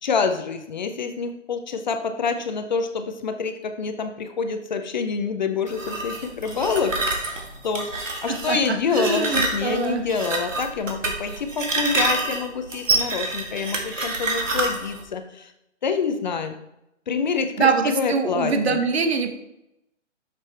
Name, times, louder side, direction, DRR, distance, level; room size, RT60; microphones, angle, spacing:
voice 1, 0.0-6.9 7.6-7.8 8.2-15.5 15.8-16.6 17.1-18.8, left 5 dB, 40° left, 7 dB, 0.6 m, -26 dB
sound 1, 5.7-15.0, right 2 dB, 85° right, 1.8 m, -27 dB
voice 2, 8.3-10.1 17.6-19.3, right 4 dB, 55° right, 7 dB, 1.1 m, -23 dB
7.1 x 6.8 x 3.3 m, 0.84 s
hypercardioid pair, 150°, 37 cm